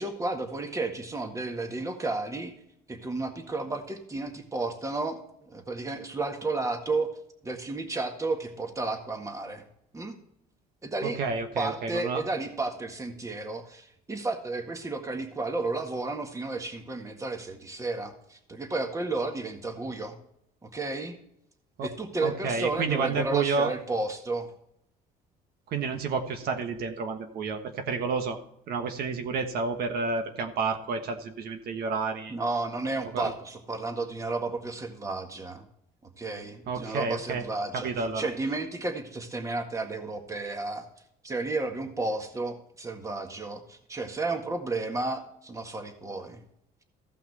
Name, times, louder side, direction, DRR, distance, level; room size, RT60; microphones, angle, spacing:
voice 1, 0.0-2.5 2.9-7.1 7.4-9.6 9.9-10.2 10.8-11.2 11.6-20.2 20.6-21.2 21.8-24.5 32.3-35.6 36.2-40.9 41.2-46.4, right 3 dB, 20° right, 5 dB, 1.7 m, -32 dB
voice 2, 11.0-12.2 21.8-21.9 22.2-23.7 25.7-28.4 28.7-32.3 33.1-33.3 36.7-37.4 37.7-38.3, right 4 dB, 65° right, 5 dB, 1.3 m, -30 dB
15.0 x 5.8 x 4.2 m, 0.75 s
cardioid pair, 110°, 17 cm